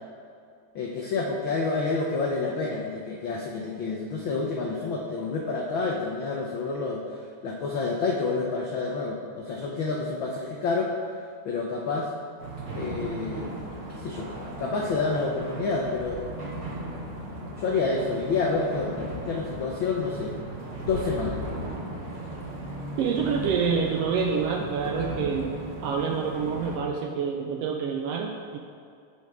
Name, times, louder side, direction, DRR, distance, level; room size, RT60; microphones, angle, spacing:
voice 1, 0.7-10.9 11.4-12.1 12.7-13.5 13.9-14.3 14.6-16.2 17.6-20.3 20.9-21.4, left 4 dB, 90° left, -1 dB, 1.0 m, -28 dB
sound 1, 12.4-26.8, right 1 dB, 35° right, 1.4 m, -36 dB
voice 2, 23.0-25.5 25.8-28.6, right 6 dB, 80° right, 1 dB, 1.4 m, -27 dB
16.0 x 5.6 x 3.6 m, 2.4 s
omnidirectional pair, 3.4 m